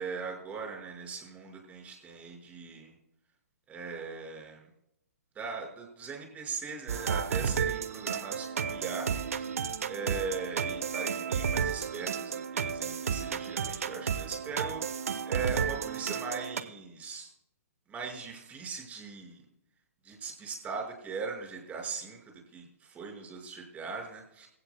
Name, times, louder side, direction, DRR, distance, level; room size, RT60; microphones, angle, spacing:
voice 1, 0.0-3.0 3.7-4.7 5.3-9.5 9.8-14.8 15.2-17.3 17.9-19.4 20.0-24.5, right 5 dB, 20° right, 1 dB, 5.3 m, -40 dB
sound 1, 6.9-16.6, right 7 dB, 65° right, 1.0 m, -32 dB
24.5 x 16.5 x 2.2 m, 0.78 s
figure-of-eight pair, 125°, 8 cm